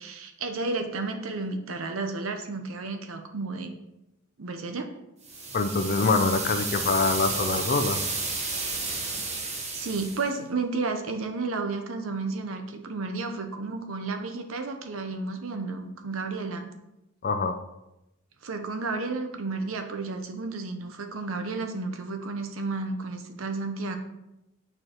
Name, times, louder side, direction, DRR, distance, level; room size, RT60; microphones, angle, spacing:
voice 1, 0.0-3.7 4.4-4.9 9.7-16.7 18.4-24.0, right 3 dB, 80° right, 6 dB, 0.7 m, -32 dB
sound 1, 5.2-10.3, right 3 dB, 35° right, 1.0 m, -32 dB
voice 2, 5.5-8.0 17.2-17.6, left 4 dB, 45° left, 9 dB, 0.5 m, -24 dB
8.7 x 4.5 x 3.0 m, 0.91 s
head